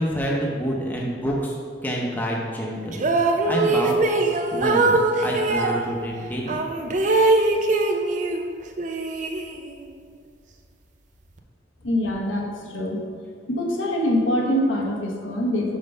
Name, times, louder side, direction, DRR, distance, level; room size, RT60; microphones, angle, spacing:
voice 1, 0.0-1.6 1.8-3.1 3.5-4.0 4.3-6.6, equal, 10° left, -2 dB, 0.7 m, -27 dB
sound 1, 2.9-5.8 6.5-8.4 8.8-9.9, right 2 dB, 40° right, 0.5 m, -22 dB
voice 2, 11.8-13.0 13.5-15.8, equal, 90° left, -1 dB, 1.1 m, -24 dB
5.4 x 5.1 x 5.3 m, 2.1 s
head